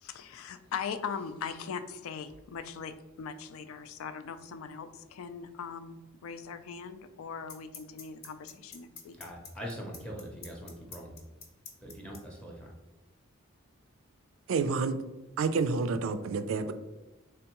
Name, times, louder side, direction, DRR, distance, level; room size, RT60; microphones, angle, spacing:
voice 1, 0.0-9.2, left 6 dB, 85° left, 10 dB, 0.3 m, -40 dB
sound 1, 6.4-6.5 7.5-12.2, left 5 dB, 50° left, 0.7 m, -45 dB
voice 2, 9.2-11.1 11.8-12.7, equal, 5° left, -1 dB, 0.5 m, -42 dB
voice 3, 14.5-15.0 15.4-16.7, right 4 dB, 70° right, 10 dB, 0.3 m, -29 dB
3.5 x 3.4 x 2.9 m, 1.1 s
head